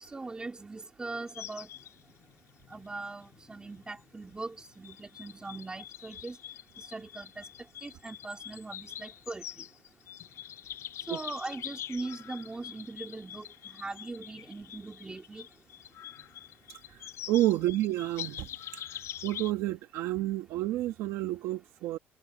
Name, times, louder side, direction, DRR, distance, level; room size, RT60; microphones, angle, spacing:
voice 1, 0.1-1.7 2.7-6.4 6.8-7.4 7.8-9.4 11.1-13.4 13.7-15.4, right 3 dB, 15° right, 2.1 m, -40 dB
sound 1, 1.3-19.5, left 12 dB, 65° left, 6.0 m, -45 dB
voice 2, 17.3-18.5 19.2-22.0, right 15 dB, 85° right, 1.3 m, -29 dB
cardioid pair, 115°, 5 cm